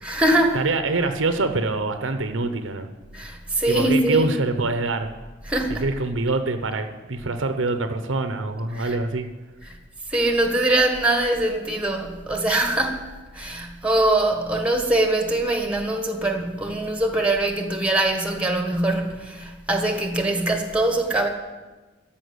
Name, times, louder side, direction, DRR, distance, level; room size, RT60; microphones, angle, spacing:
voice 1, 0.0-0.6 3.1-4.3 5.5-5.8 8.7-9.0 10.1-13.0 13.3-21.3, right 1 dB, 5° right, 4 dB, 1.5 m, -22 dB
voice 2, 0.5-2.9 3.7-5.1 5.8-9.3, right 3 dB, 65° right, 8 dB, 0.9 m, -25 dB
14.5 x 5.9 x 9.7 m, 1.2 s
head